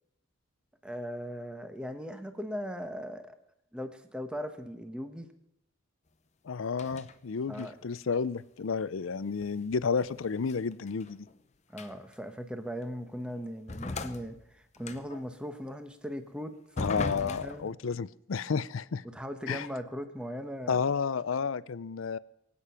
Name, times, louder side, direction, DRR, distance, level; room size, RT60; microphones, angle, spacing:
voice 1, 0.8-3.3 3.7-5.3 7.5-7.7 11.7-16.6 17.1-17.7 19.0-20.9, equal, 5° right, 7 dB, 1.1 m, -39 dB
voice 2, 6.4-11.3 16.8-19.0 19.5-19.7 20.7-22.2, left 5 dB, 75° left, 18 dB, 0.5 m, -31 dB
sound 1, 6.7-7.1 7.5-7.9 9.4-11.4 11.7-12.1 12.8-12.9 13.7-15.2 16.8-17.7, left 3 dB, 35° left, 0.7 m, -39 dB
23.0 x 8.6 x 5.8 m, 0.82 s
head